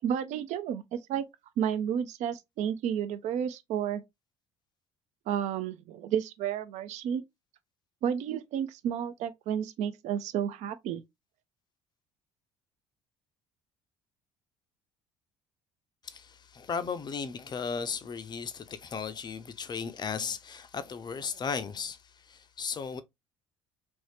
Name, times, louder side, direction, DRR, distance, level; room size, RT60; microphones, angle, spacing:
voice 1, 0.0-0.8 1.1-1.2 1.6-4.0 5.3-7.2 8.0-11.0, right 9 dB, 50° right, 0.5 m, -31 dB
voice 2, 16.0-23.0, left 6 dB, 30° left, 0.5 m, -36 dB
3.0 x 2.7 x 3.2 m
figure-of-eight pair, 55°, 15 cm